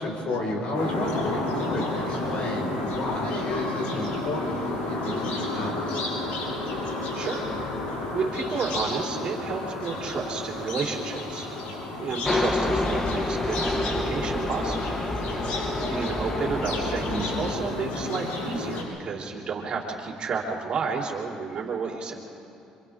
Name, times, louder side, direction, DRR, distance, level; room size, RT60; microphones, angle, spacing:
voice 1, 0.0-6.0 17.1-17.5, left 1 dB, 55° left, 0 dB, 5.3 m, -32 dB
sound 1, 0.7-18.8, left 2 dB, 85° left, 6.8 m, -31 dB
voice 2, 8.1-11.5 12.0-15.0 15.9-22.1, right 5 dB, 50° right, -1 dB, 3.8 m, -31 dB
sound 2, 12.3-17.5, left 2 dB, 20° left, 1.7 m, -28 dB
28.5 x 26.5 x 3.8 m, 2.8 s
cardioid pair, 105°, 2 cm